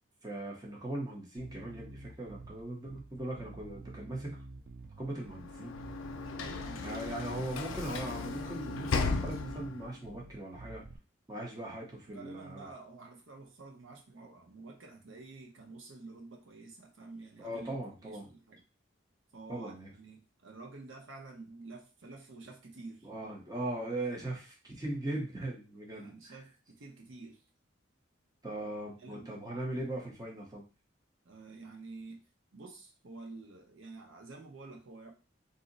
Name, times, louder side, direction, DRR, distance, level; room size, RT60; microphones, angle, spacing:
voice 1, 0.2-4.3 5.0-5.8 6.8-10.8 11.3-12.7 17.4-18.3 19.5-19.9 23.0-26.3 28.4-30.6, right 1 dB, 20° right, -2 dB, 0.7 m, -39 dB
Bass guitar, 1.4-11.0, right 2 dB, 45° right, 0.4 m, -49 dB
Sliding door / Slam, 5.2-10.0, left 4 dB, 90° left, 0.4 m, -36 dB
voice 2, 6.3-7.1 12.1-17.7 18.0-18.6 19.3-23.1 25.9-27.4 29.0-29.3 31.2-32.2 32.5-35.1, right 3 dB, 80° right, 1 dB, 0.7 m, -49 dB
2.6 x 2.0 x 3.8 m, 0.31 s
head